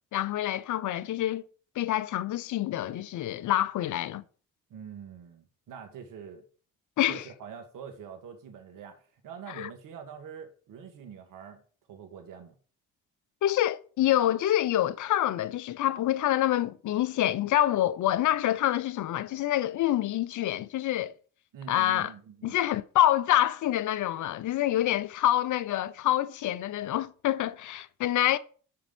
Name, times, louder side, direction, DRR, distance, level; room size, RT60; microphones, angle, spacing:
voice 1, 0.1-1.4 1.8-4.2 7.0-7.2 9.5-9.7 13.4-21.1 21.7-22.1 22.4-28.4, left 13 dB, 60° left, 0.7 m, -26 dB
voice 2, 4.7-6.4 7.1-11.6 11.9-12.5 21.5-22.6, right 7 dB, 70° right, 1.7 m, -45 dB
5.7 x 5.3 x 5.2 m
supercardioid pair, 55°, 34 cm